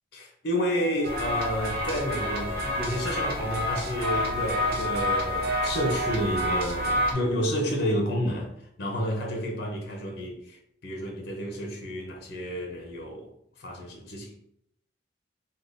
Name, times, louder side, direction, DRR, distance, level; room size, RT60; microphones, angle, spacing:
voice 1, 0.1-8.5 8.8-13.3 13.6-14.3, equal, 55° left, 0.6 m, -30 dB
sound 1, 0.6-6.2, right 1 dB, 10° left, 1.5 m, -42 dB
sound 2, 1.0-7.1, left 1 dB, 50° right, 0.6 m, -28 dB
3.5 x 2.2 x 2.5 m
head